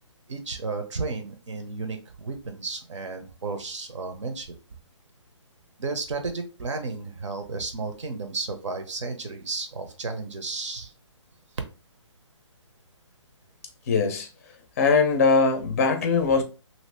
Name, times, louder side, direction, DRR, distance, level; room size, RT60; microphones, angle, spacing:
voice 1, 0.3-4.5 5.8-10.9, right 3 dB, 70° right, 0.9 m, -33 dB
voice 2, 13.9-14.3 14.8-16.4, left 4 dB, 30° left, 0.5 m, -21 dB
2.8 x 2.6 x 3.2 m
hypercardioid pair, 165°, 16 cm